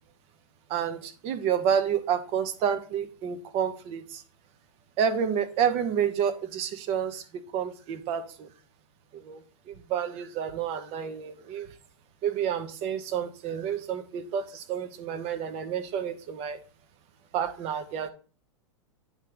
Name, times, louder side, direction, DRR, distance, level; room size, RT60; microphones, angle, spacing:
voice 1, 0.7-4.2 5.0-8.5 9.1-9.4 9.7-11.7 12.2-16.6 17.3-18.1, right 8 dB, 40° right, 10 dB, 0.9 m, -29 dB
9.0 x 3.3 x 3.8 m, 0.38 s
hypercardioid pair, 105°, 16 cm